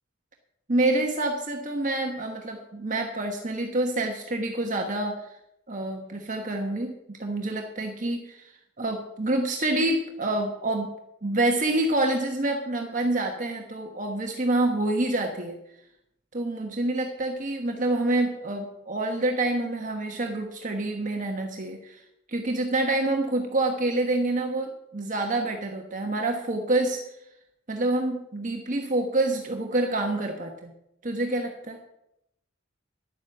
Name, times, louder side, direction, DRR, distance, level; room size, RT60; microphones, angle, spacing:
voice 1, 0.7-5.2 5.7-8.5 8.8-10.9 11.2-15.6 16.3-22.0 22.3-27.0 27.7-30.7 31.0-31.8, right 2 dB, 40° right, 2 dB, 1.3 m, -27 dB
11.0 x 8.3 x 7.8 m, 0.83 s
head